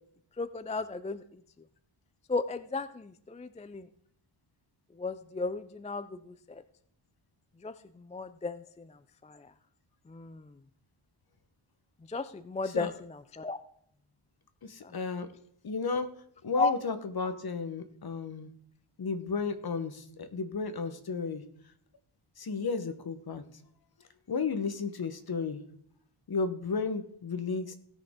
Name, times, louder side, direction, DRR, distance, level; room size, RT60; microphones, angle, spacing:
voice 1, 0.4-1.2 2.3-3.9 5.0-6.1 7.6-7.7 8.1-8.6 9.3-9.4 10.1-10.4 12.1-12.9 13.3-13.6 16.6-16.7, left 3 dB, 15° left, 13 dB, 0.3 m, -33 dB
voice 2, 14.6-15.3 15.6-16.1 16.4-18.5 19.0-21.4 22.4-23.4 24.3-25.7 26.3-27.8, left 4 dB, 45° left, 10 dB, 1.1 m, -33 dB
17.5 x 6.4 x 3.6 m, 0.67 s
wide cardioid pair, 140°, 50 cm